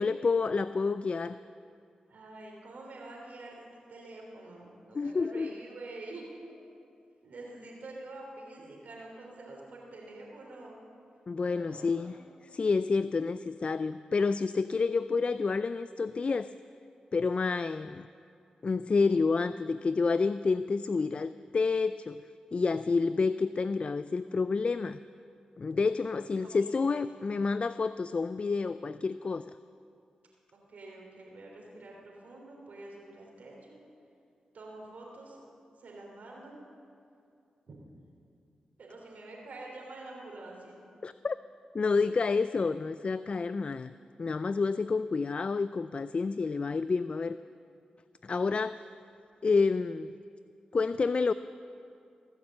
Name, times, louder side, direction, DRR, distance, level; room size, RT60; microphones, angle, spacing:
voice 1, 0.0-1.4 4.9-5.5 11.3-12.2 12.5-16.5 17.1-18.1 18.6-22.2 22.5-25.0 25.6-29.4 41.0-41.4 41.7-43.9 44.2-47.4 48.2-48.8 49.4-50.1 50.7-51.3, left 4 dB, 45° left, 14 dB, 0.3 m, -29 dB
voice 2, 2.1-6.3 7.2-10.8 11.5-12.2 26.3-27.2 30.7-33.8 34.5-35.4 35.8-36.6 37.7-37.8 38.8-40.8, right 2 dB, 70° right, -1 dB, 3.3 m, -47 dB
20.0 x 7.2 x 7.5 m, 2.5 s
supercardioid pair, 45°, 3 cm